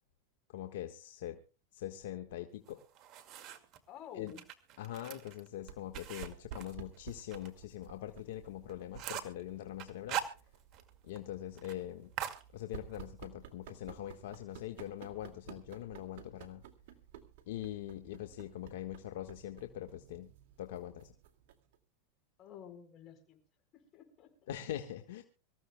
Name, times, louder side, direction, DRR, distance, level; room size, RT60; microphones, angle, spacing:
voice 1, 0.5-1.4 1.7-2.8 4.2-4.3 4.8-10.2 11.0-12.1 12.5-16.6 17.5-20.3 20.6-21.1 24.5-25.2, left 12 dB, 75° left, 6 dB, 1.4 m, -43 dB
sound 1, 2.7-3.8 4.3-7.5 7.8-7.9 8.3-8.4 8.7-9.4 9.8-10.9 11.2-11.3 11.6-11.8 12.2-13.0, right 10 dB, 45° right, 2.1 m, -42 dB
voice 2, 3.9-4.4 18.2-18.4 22.4-23.4 23.7-24.5, left 9 dB, 40° left, 5 dB, 4.4 m, -51 dB
sound 2, 5.6-21.8, right 9 dB, 65° right, 2.2 m, -54 dB
25.5 x 14.5 x 2.2 m, 0.32 s
supercardioid pair, 120°, 0 cm